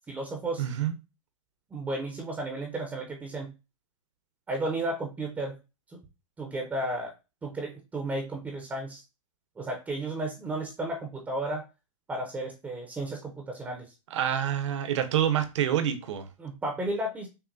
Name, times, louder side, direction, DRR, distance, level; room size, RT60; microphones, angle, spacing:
voice 1, 0.1-0.6 1.7-3.5 4.5-5.6 5.9-6.0 6.4-7.1 7.4-9.0 9.6-11.6 12.1-13.9 16.4-17.3, right 2 dB, 10° right, 0.6 m, -33 dB
voice 2, 0.6-0.9 14.1-16.3, right 10 dB, 60° right, 0.8 m, -27 dB
5.8 x 2.2 x 2.6 m
hypercardioid pair, 145°, 17 cm